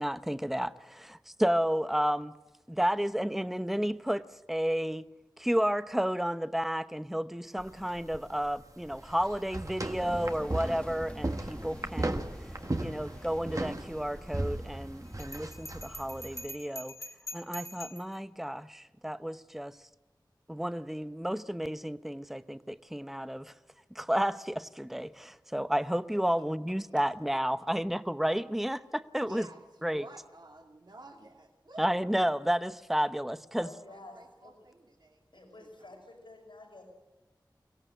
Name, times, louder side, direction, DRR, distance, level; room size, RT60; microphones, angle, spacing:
voice 1, 0.0-2.3 2.7-4.2 4.5-5.1 5.4-12.2 12.8-16.9 17.3-19.8 20.5-23.5 23.9-29.5 29.8-30.1 31.8-33.7, equal, 5° right, 0.8 m, -31 dB
sound 1, 7.6-16.5, right 2 dB, 45° right, 1.6 m, -37 dB
sound 2, 9.9-16.7, left 1 dB, 15° left, 1.1 m, -47 dB
Bell, 15.2-18.1, equal, 45° left, 1.9 m, -44 dB
voice 2, 29.2-31.9 33.5-35.7, right 2 dB, 65° right, 2.5 m, -52 dB
voice 3, 33.6-34.6 35.3-36.8, left 2 dB, 85° left, 5.3 m, -50 dB
23.5 x 17.0 x 7.9 m
wide cardioid pair, 50°, 8 cm